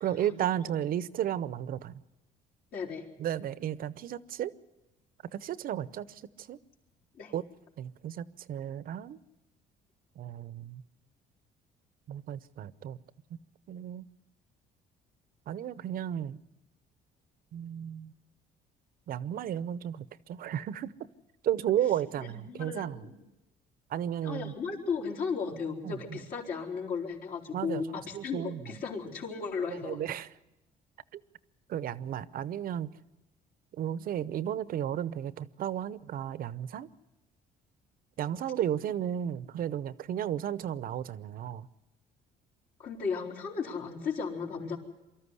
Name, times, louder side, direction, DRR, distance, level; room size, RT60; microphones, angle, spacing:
voice 1, 0.0-2.0 3.2-4.5 5.3-6.6 7.3-7.4 7.8-9.2 10.2-10.8 12.1-13.0 13.7-14.1 15.5-16.4 17.5-18.1 19.1-20.9 21.4-23.1 23.9-24.5 25.8-26.2 27.5-28.6 29.7-30.3 31.1-31.2 31.7-32.9 33.7-36.9 38.2-41.7, right 10 dB, 60° right, 0.8 m, -33 dB
voice 2, 2.7-3.1 7.2-7.3 22.2-23.1 24.2-30.0 42.8-44.8, left 5 dB, 60° left, 4.4 m, -35 dB
24.0 x 13.5 x 9.7 m
cardioid pair, 110°, 17 cm